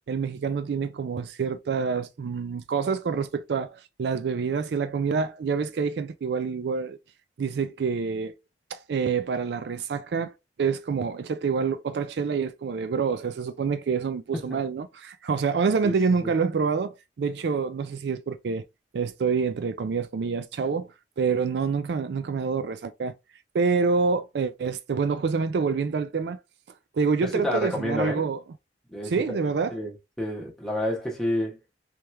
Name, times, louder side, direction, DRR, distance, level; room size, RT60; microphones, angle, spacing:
voice 1, 0.1-7.0 7.4-8.3 8.7-10.3 10.6-18.7 18.9-20.9 21.2-23.1 23.5-26.4 26.9-28.4 29.0-29.7, right 5 dB, 65° right, 0.4 m, -27 dB
voice 2, 27.2-28.3 28.9-29.4 29.7-31.6, left 1 dB, 5° left, 1.2 m, -29 dB
3.4 x 3.1 x 3.3 m
head